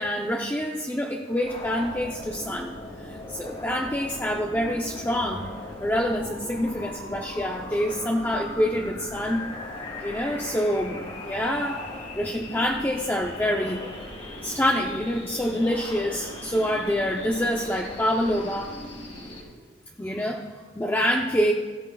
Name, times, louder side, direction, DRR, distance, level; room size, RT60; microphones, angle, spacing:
voice 1, 0.0-5.5 5.8-9.4 10.0-11.8 12.2-14.0 14.4-18.7 20.0-20.5 20.8-21.5, equal, 10° left, 0 dB, 0.5 m, -26 dB
sound 1, 1.4-19.4, left 1 dB, 30° left, 1.9 m, -39 dB
16.5 x 13.5 x 2.3 m, 1.5 s
head